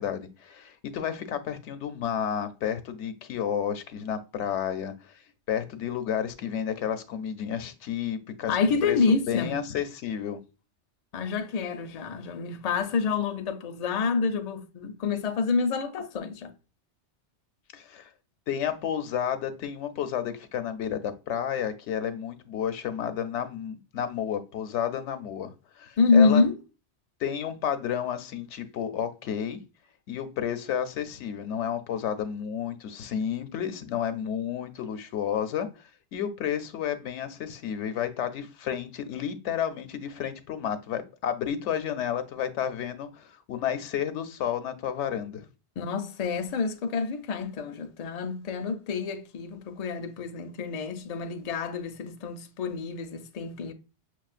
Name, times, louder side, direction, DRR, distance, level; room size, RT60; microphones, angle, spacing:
voice 1, 0.0-5.2 5.5-9.0 9.3-10.4 17.7-18.1 18.5-26.4 27.2-29.6 30.1-45.5, left 9 dB, 85° left, 0.9 m, -31 dB
voice 2, 8.5-9.6 11.1-16.5 26.0-26.6 45.8-53.7, left 4 dB, 55° left, 0.4 m, -27 dB
6.1 x 2.3 x 2.4 m
omnidirectional pair, 1.2 m